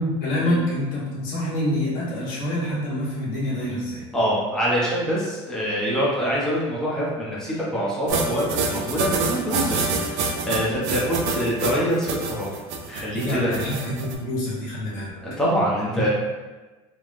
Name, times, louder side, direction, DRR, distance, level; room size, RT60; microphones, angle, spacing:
voice 1, 0.0-4.0 13.1-15.1, left 1 dB, 60° left, -7 dB, 1.3 m, -26 dB
voice 2, 4.1-12.5 12.9-13.6 15.2-16.1, equal, 5° left, -7 dB, 0.7 m, -25 dB
sound 1, 8.1-14.1, right 4 dB, 60° right, 0.5 m, -26 dB
3.2 x 2.2 x 2.5 m, 1.2 s
supercardioid pair, 140°, 15 cm